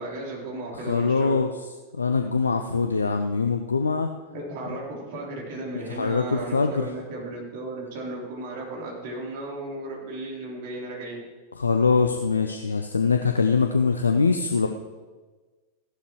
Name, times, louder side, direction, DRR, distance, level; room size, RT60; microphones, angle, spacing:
voice 1, 0.0-1.4 4.3-11.2, right 2 dB, 50° right, -3 dB, 3.7 m, -35 dB
voice 2, 0.9-1.5 1.9-4.1 5.7-6.9 11.6-14.7, left 4 dB, 75° left, 6 dB, 0.6 m, -23 dB
15.0 x 11.5 x 3.1 m, 1.3 s
figure-of-eight pair, 90°, 0 cm